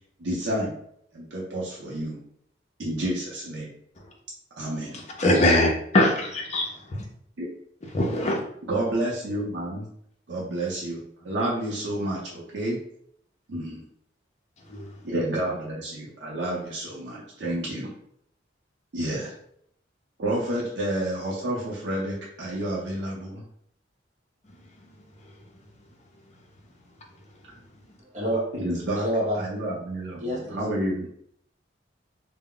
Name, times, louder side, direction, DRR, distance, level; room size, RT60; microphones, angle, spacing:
voice 1, 0.2-0.7 1.1-2.2 2.8-3.7 4.6-5.0 7.4-7.5 8.7-9.9 10.3-12.8 13.5-13.8 15.0-17.9 18.9-19.3 20.2-23.4 28.5-29.1 29.3-31.1, right 1 dB, 75° right, -5 dB, 0.6 m, -30 dB
voice 2, 4.9-7.0 7.9-8.4 14.7-14.9 24.9-25.0, left 1 dB, 35° left, -1 dB, 0.5 m, -23 dB
voice 3, 28.1-28.5 29.0-29.4 30.2-30.6, equal, 40° right, -4 dB, 0.8 m, -27 dB
2.2 x 2.0 x 3.7 m, 0.70 s
head